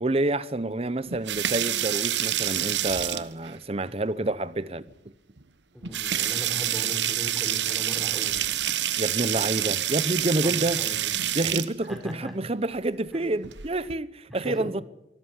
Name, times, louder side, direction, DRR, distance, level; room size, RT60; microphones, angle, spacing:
voice 1, 0.0-4.9 9.0-10.8 11.3-14.8, right 2 dB, 35° right, 0.8 m, -28 dB
sound 1, 1.1-3.5 4.9-5.0 5.4-5.5 5.8-11.7 13.4-13.9, right 12 dB, 85° right, 1.2 m, -27 dB
voice 2, 5.7-8.4 9.3-9.5 10.4-11.1 11.9-12.4 13.1-13.3 14.3-14.7, equal, ahead, 4.4 m, -38 dB
24.5 x 14.0 x 9.7 m
head